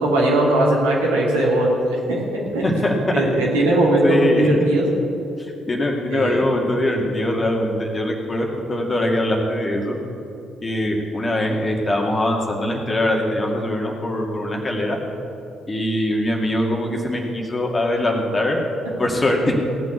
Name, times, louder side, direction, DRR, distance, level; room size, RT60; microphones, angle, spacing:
voice 1, 0.0-2.2 2.5-2.6 3.1-4.8 6.1-6.4, right 1 dB, 70° right, -4 dB, 2.6 m, -19 dB
voice 2, 2.6-2.9 4.0-4.5 5.4-10.0 10.6-15.0 15.7-18.6 19.0-19.6, left 1 dB, 25° left, 1 dB, 2.3 m, -22 dB
17.5 x 6.2 x 8.2 m, 2.7 s
figure-of-eight pair, 45°, 0 cm